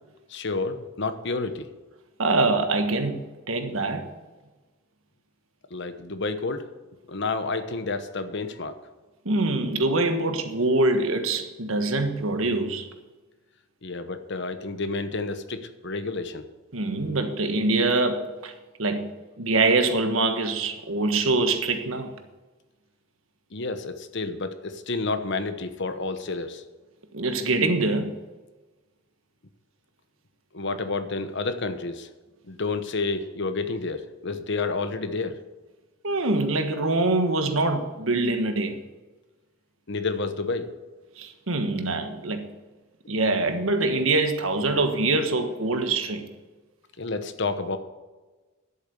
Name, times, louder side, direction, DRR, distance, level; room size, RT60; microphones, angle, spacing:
voice 1, 0.3-1.7 5.7-6.6 7.1-8.8 13.8-16.4 23.5-26.6 30.5-32.1 32.5-35.4 39.9-40.7 47.0-47.8, left 3 dB, 60° left, 1.0 m, -30 dB
voice 2, 2.2-4.1 9.2-12.9 16.7-18.5 18.8-19.1 19.4-22.1 27.1-28.1 36.0-38.8 41.2-42.5 43.1-46.3, right 2 dB, 80° right, 1.4 m, -24 dB
11.0 x 8.3 x 7.0 m
head